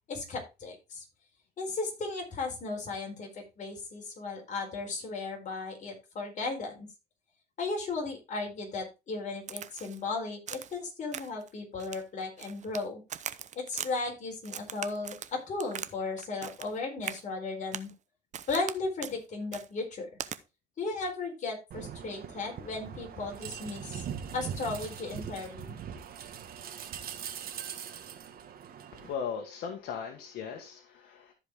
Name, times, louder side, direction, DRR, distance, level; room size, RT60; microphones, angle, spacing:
voice 1, 0.1-1.0 1.6-6.9 7.6-13.0 13.6-17.9 18.5-20.1 20.8-24.0 24.3-25.8, left 3 dB, 45° left, 1 dB, 4.3 m, -36 dB
Crack, 9.5-10.0 10.5-10.8 11.1-11.5 11.8-12.8 13.1-13.9 14.4-15.9 16.2-16.7 17.0-17.2 17.7-17.9 18.3-18.7 19.0-19.2 19.5-19.7 20.2-20.4, right 9 dB, 45° right, 0.8 m, -40 dB
sound 1, 21.7-29.1, right 8 dB, 60° right, 1.7 m, -41 dB
voice 2, 28.9-31.3, left 7 dB, 75° left, 3 dB, 1.8 m, -38 dB
14.0 x 5.0 x 3.7 m, 0.26 s
cardioid pair, 110°, 17 cm